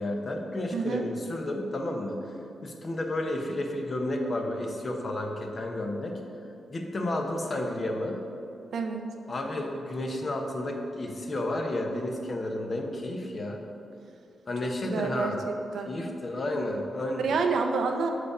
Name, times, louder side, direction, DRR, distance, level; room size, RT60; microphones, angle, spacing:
voice 1, 0.0-2.2 2.6-6.1 6.7-8.2 9.3-13.6 14.5-15.4 15.9-17.3, left 1 dB, 45° left, 2 dB, 0.9 m, -31 dB
voice 2, 0.7-1.0 8.7-9.1 14.8-15.9 17.2-18.1, right 4 dB, 75° right, 4 dB, 0.6 m, -28 dB
6.7 x 5.0 x 4.9 m, 2.7 s
cardioid pair, 70°, 0 cm